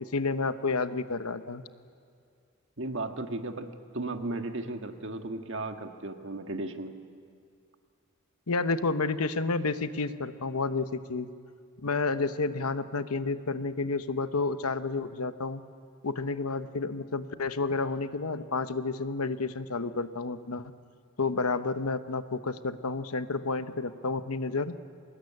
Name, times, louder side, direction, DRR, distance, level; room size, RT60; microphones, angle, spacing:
voice 1, 0.0-1.6 8.5-11.3 11.8-15.6 16.0-20.7 21.2-24.8, left 3 dB, 85° left, 11 dB, 1.0 m, -30 dB
voice 2, 2.8-3.7 3.9-6.9, right 2 dB, 55° right, 5 dB, 1.6 m, -35 dB
24.0 x 20.0 x 9.8 m, 2.3 s
head